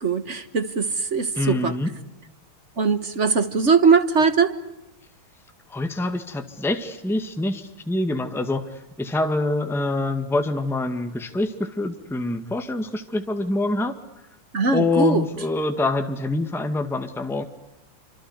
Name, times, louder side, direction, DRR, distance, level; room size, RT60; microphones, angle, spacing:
voice 1, 0.0-1.7 2.8-4.5 14.5-15.2, right 5 dB, 40° right, 1.4 m, -20 dB
voice 2, 1.4-1.9 5.7-8.6 9.0-13.9 14.7-17.4, left 2 dB, ahead, 1.7 m, -25 dB
27.5 x 25.5 x 8.1 m
omnidirectional pair, 2.4 m